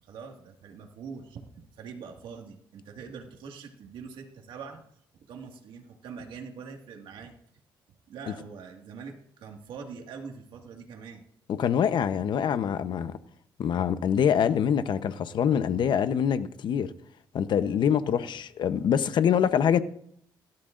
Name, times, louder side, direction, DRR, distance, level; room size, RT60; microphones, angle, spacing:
voice 1, 0.0-4.8 5.1-7.3 8.1-11.2 18.0-18.3, right 5 dB, 75° right, 1.9 m, -43 dB
voice 2, 11.5-13.2 13.6-16.9 17.3-19.8, left 8 dB, 60° left, 0.9 m, -25 dB
17.5 x 12.5 x 2.6 m
cardioid pair, 95°, 9 cm